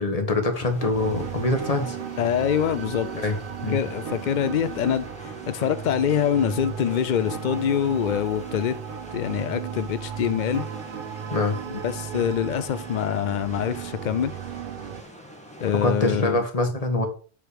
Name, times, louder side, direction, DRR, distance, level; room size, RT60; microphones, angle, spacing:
voice 1, 0.0-2.0 3.2-3.4 3.6-3.8 11.3-11.6 15.8-17.1, left 2 dB, 25° left, 1.4 m, -24 dB
sound 1, 0.5-16.3, equal, 5° left, 1.9 m, -44 dB
sound 2, 0.7-13.6, right 5 dB, 75° right, 1.9 m, -40 dB
sound 3, 0.9-15.0, right 9 dB, 50° right, 0.7 m, -36 dB
voice 2, 2.2-3.1 3.7-8.8 9.1-10.7 11.7-14.3 15.6-16.4, left 9 dB, 85° left, 0.4 m, -25 dB
7.8 x 5.1 x 5.0 m
omnidirectional pair, 1.4 m